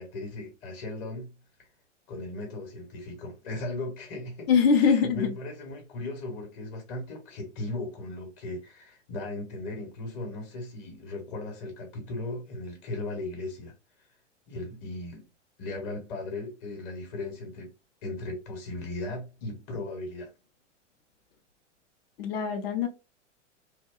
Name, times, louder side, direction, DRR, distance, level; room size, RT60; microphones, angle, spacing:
voice 1, 0.0-1.7 2.1-4.5 4.8-13.7 14.5-15.3 15.6-17.7 18.0-20.3, left 2 dB, 35° left, 1.0 m, -37 dB
voice 2, 4.5-5.3 22.2-22.9, left 6 dB, 55° left, 0.6 m, -23 dB
2.8 x 2.1 x 2.3 m
figure-of-eight pair, 105°, 36 cm